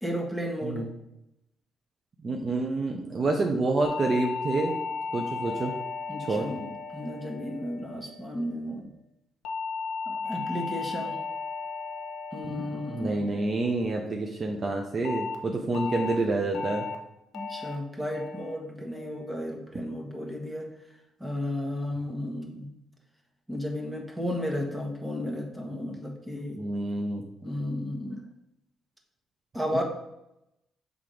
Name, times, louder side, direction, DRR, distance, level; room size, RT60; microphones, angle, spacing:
voice 1, 0.0-0.8 6.1-8.9 10.1-11.2 12.3-13.4 17.3-20.7 21.2-22.7 23.5-26.6 27.4-28.2 29.5-29.8, left 1 dB, 10° right, 2 dB, 1.4 m, -33 dB
voice 2, 2.2-4.7 5.1-5.7 6.3-6.4 12.4-16.8 26.5-27.3, right 2 dB, 40° right, 2 dB, 0.7 m, -28 dB
sound 1, 3.8-8.3 9.4-13.9 15.0-15.3 15.7-16.1 16.5-16.9 17.3-17.7 18.1-18.5 18.9-19.3, left 4 dB, 85° left, 0.8 m, -35 dB
6.0 x 3.6 x 5.0 m, 0.85 s
cardioid pair, 90°, 0 cm